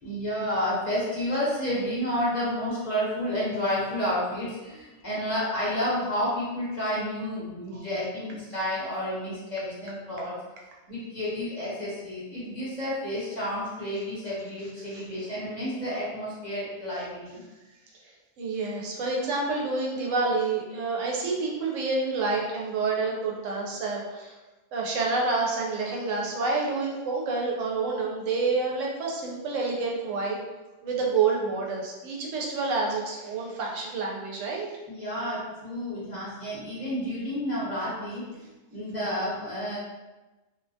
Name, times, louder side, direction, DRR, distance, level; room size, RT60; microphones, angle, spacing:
voice 1, 0.0-10.3 10.9-17.4 34.9-38.4 38.7-39.8, equal, 40° left, -9 dB, 0.8 m, -30 dB
voice 2, 18.4-24.4 24.7-30.4 30.8-34.7, right 3 dB, 85° right, -2 dB, 1.0 m, -28 dB
2.5 x 2.1 x 2.6 m, 1.1 s
omnidirectional pair, 1.3 m